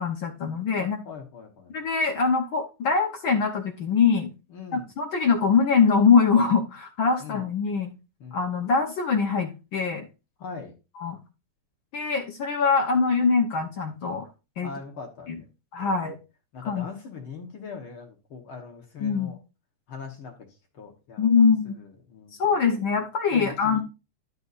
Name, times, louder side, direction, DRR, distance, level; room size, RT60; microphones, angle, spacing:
voice 1, 0.0-1.0 1.7-4.3 4.7-7.9 8.3-10.0 11.0-11.2 11.9-14.3 14.6-14.7 15.3-15.4 15.7-16.1 16.6-16.9 19.0-19.3 21.2-21.8 22.4-23.8, left 5 dB, 70° left, 3 dB, 1.1 m, -23 dB
voice 2, 0.8-1.7 4.5-4.9 7.2-7.4 8.2-8.4 10.4-10.7 14.6-15.4 15.8-16.1 16.5-19.4 19.9-20.5 20.7-22.7 23.3-23.8, left 5 dB, 55° left, 2 dB, 1.7 m, -41 dB
11.5 x 6.7 x 2.5 m, 0.29 s
omnidirectional pair, 3.5 m